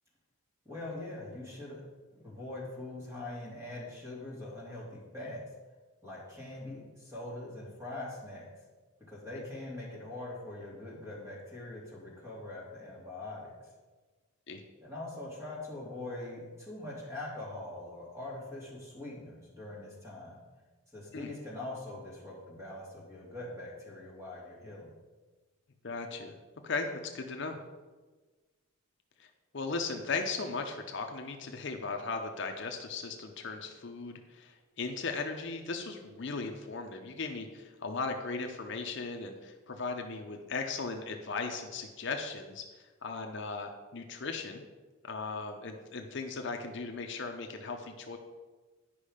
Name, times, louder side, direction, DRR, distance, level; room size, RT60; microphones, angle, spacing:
voice 1, 0.6-1.8 2.1-5.4 6.0-8.5 9.1-13.7 14.8-20.4 20.9-24.9, left 2 dB, 15° right, -5 dB, 2.5 m, -43 dB
voice 2, 25.8-26.4 26.6-27.6 29.2-29.3 29.5-42.6 43.0-44.6 45.0-48.2, left 4 dB, 55° left, 4 dB, 0.7 m, -37 dB
10.0 x 5.3 x 5.0 m, 1.3 s
head